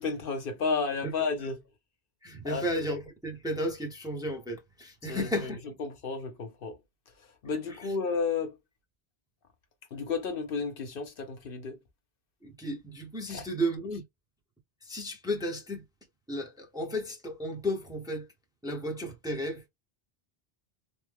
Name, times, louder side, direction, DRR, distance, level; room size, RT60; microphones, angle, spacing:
voice 1, 0.0-1.6 2.4-2.7 5.1-5.5 5.8-6.8 7.4-8.5 9.9-11.8 13.3-13.5, left 4 dB, 65° left, 1.0 m, -32 dB
voice 2, 2.2-5.6 7.7-7.9 12.4-14.0 14.8-15.8 16.3-18.3 18.6-19.6, equal, 5° right, 0.7 m, -33 dB
3.3 x 2.0 x 3.4 m
omnidirectional pair, 1.0 m